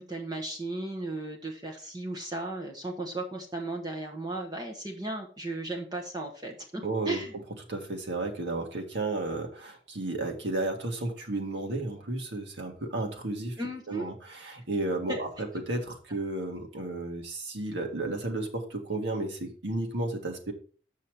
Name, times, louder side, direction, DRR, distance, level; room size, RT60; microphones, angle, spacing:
voice 1, 0.0-7.3 13.6-14.1 15.1-15.2, right 2 dB, 20° right, 0 dB, 1.2 m, -35 dB
voice 2, 6.8-7.2 7.7-13.6 13.9-20.5, right 2 dB, 80° right, 3 dB, 1.7 m, -33 dB
7.5 x 5.6 x 4.8 m, 0.41 s
head